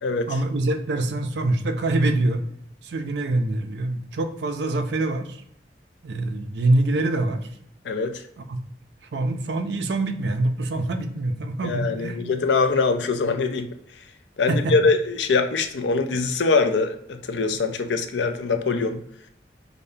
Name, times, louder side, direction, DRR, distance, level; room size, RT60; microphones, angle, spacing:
voice 1, 0.3-2.4 2.8-5.4 6.0-7.5 8.4-8.6 9.1-12.3 14.5-14.7, right 2 dB, 75° right, 8 dB, 0.5 m, -25 dB
voice 2, 7.8-8.2 11.6-13.7 14.4-19.0, left 4 dB, 90° left, 7 dB, 0.5 m, -23 dB
5.1 x 2.1 x 2.7 m, 0.74 s
head